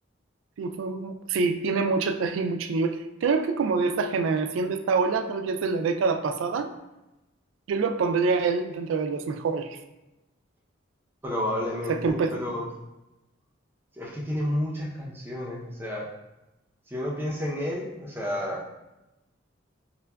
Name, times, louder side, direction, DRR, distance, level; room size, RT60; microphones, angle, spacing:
voice 1, 0.6-6.7 7.7-9.8 11.9-12.4, right 4 dB, 85° right, 8 dB, 0.3 m, -26 dB
voice 2, 11.2-12.7 14.0-16.1 16.9-18.6, left 1 dB, 10° right, -4 dB, 0.5 m, -31 dB
5.7 x 2.2 x 2.2 m, 0.97 s
head